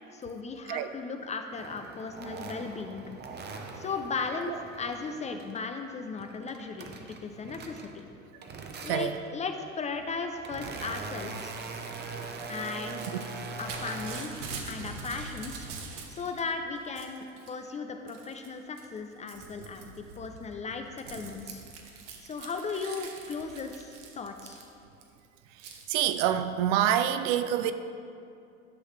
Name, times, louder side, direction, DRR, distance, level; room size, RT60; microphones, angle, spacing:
voice 1, 0.1-3.0 3.8-6.9 7.2-8.1 8.8-11.5 12.5-13.0 13.6-14.3 14.7-15.6 16.1-21.6 22.2-24.6, left 4 dB, 20° left, 6 dB, 0.5 m, -36 dB
sound 1, 1.6-5.7 6.0-8.1 8.4-9.3 9.9-14.2, right 4 dB, 25° right, 0.8 m, -41 dB
voice 2, 8.8-9.2 25.9-27.7, right 10 dB, 50° right, 10 dB, 0.5 m, -26 dB
Crumpling crinkling / Tearing, 11.2-16.4 16.7-17.5 18.1-18.5 18.8-25.0 25.6-25.8, right 4 dB, 65° right, 1.2 m, -44 dB
11.5 x 6.4 x 3.3 m, 2.5 s
hypercardioid pair, 80°, 39 cm